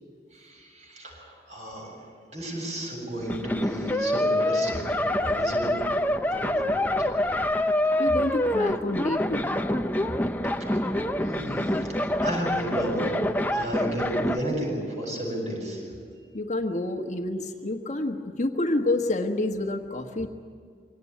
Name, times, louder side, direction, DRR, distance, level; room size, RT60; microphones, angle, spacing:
voice 1, 0.3-4.9 5.2-5.8 6.3-7.1 7.7-7.8 10.6-12.0 12.2-15.8, right 1 dB, 40° right, 0 dB, 7.8 m, -33 dB
sound 1, 3.2-14.4, left 1 dB, 10° left, 0.8 m, -26 dB
voice 2, 8.0-9.5 16.3-20.3, left 2 dB, 45° left, 4 dB, 1.3 m, -28 dB
24.5 x 18.5 x 9.7 m, 2.2 s
head